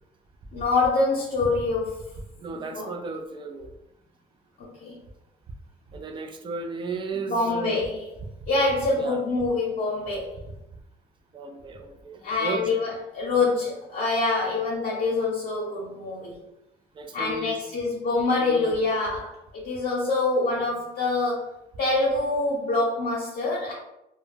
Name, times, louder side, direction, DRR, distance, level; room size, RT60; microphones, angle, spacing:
voice 1, 0.5-2.0 2.7-2.9 4.6-5.0 7.3-8.0 8.5-10.4 12.2-16.4 17.1-23.7, left 3 dB, 55° left, -6 dB, 0.7 m, -25 dB
voice 2, 2.4-3.8 5.9-7.7 9.0-9.2 11.3-12.8 17.0-17.6 18.4-18.9, right 4 dB, 30° right, 6 dB, 0.3 m, -35 dB
2.2 x 2.0 x 3.2 m, 0.88 s
cardioid pair, 110°, 17 cm